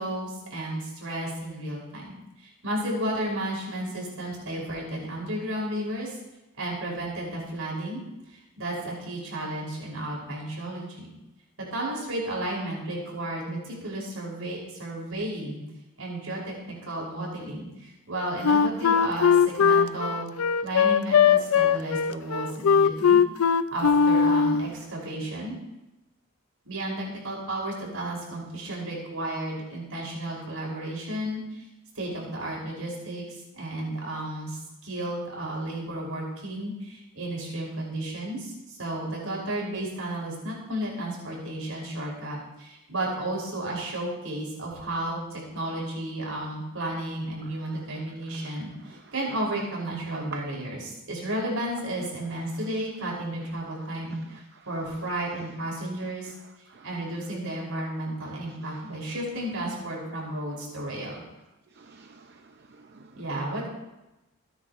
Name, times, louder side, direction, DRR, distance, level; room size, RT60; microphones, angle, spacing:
voice 1, 0.0-6.2 6.6-8.0 8.3-11.1 11.7-15.6 16.0-20.3 20.6-23.2 23.7-25.6 26.6-31.7 32.0-56.3 56.8-61.2 63.1-63.7, right 1 dB, 70° right, -3 dB, 5.5 m, -33 dB
Wind instrument woodwind instrument, 18.4-24.7, left 6 dB, 80° left, 0.5 m, -20 dB
voice 2, 47.4-49.1 50.1-50.4 52.5-52.7 53.7-55.1 56.0-57.3 57.8-57.9 58.2-59.0 60.3-60.7 61.1-61.3 61.7-63.3, right 5 dB, 50° right, 5 dB, 0.7 m, -51 dB
22.5 x 10.0 x 3.1 m, 0.98 s
head